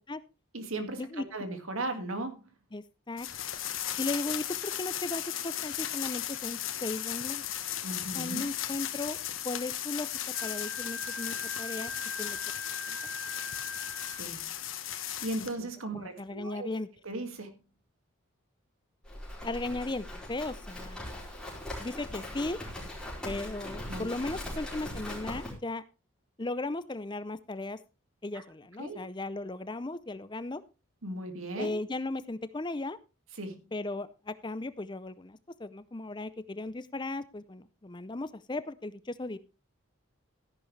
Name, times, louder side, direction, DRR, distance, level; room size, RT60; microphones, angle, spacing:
voice 1, 0.5-2.5 7.8-8.4 14.2-14.6 15.2-16.7 17.0-17.6 23.9-24.1 28.3-28.4 28.8-29.0 31.0-31.7 33.4-33.7, right 2 dB, 80° right, 7 dB, 2.1 m, -37 dB
voice 2, 2.7-3.3 4.0-7.5 8.1-9.2 9.4-10.1 10.4-12.4 12.9-13.0 15.4-15.7 15.9-16.9 19.4-21.1 21.8-22.6 23.2-25.8 26.4-27.8 28.2-30.6 31.6-33.0 33.7-39.4, left 2 dB, 20° left, 14 dB, 0.5 m, -36 dB
sound 1, 3.2-15.5, left 11 dB, 75° left, 1.3 m, -36 dB
Wind instrument woodwind instrument, 10.3-14.2, left 2 dB, 60° right, 3.5 m, -41 dB
Livestock farm animals working animals, 19.1-25.5, left 1 dB, 5° left, 4.4 m, -40 dB
13.5 x 10.5 x 3.2 m, 0.28 s
head